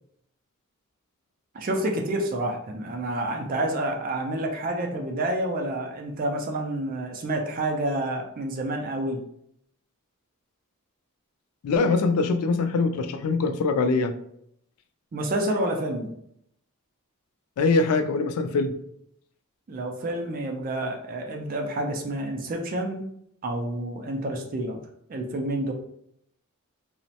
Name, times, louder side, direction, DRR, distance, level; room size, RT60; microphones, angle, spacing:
voice 1, 1.5-9.2 15.1-16.1 19.7-23.1 23.4-24.8 25.1-25.7, right 1 dB, 40° right, 2 dB, 0.4 m, -29 dB
voice 2, 11.6-14.1 17.6-18.7, left 3 dB, 80° left, 8 dB, 0.3 m, -23 dB
3.0 x 2.0 x 2.7 m, 0.72 s
head